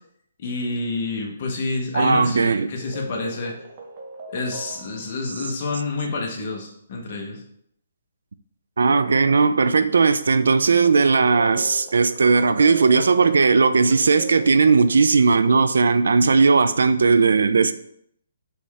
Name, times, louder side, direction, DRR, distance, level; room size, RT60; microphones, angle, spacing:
voice 1, 0.4-3.5 4.3-7.4, left 3 dB, 40° left, 1.0 m, -28 dB
voice 2, 1.9-2.7 8.8-17.7, right 4 dB, 85° right, 0.3 m, -17 dB
sound 1, 2.8-5.2 10.5-15.0, right 1 dB, 30° right, 0.7 m, -39 dB
4.2 x 3.2 x 3.5 m
hypercardioid pair, 165°, 0 cm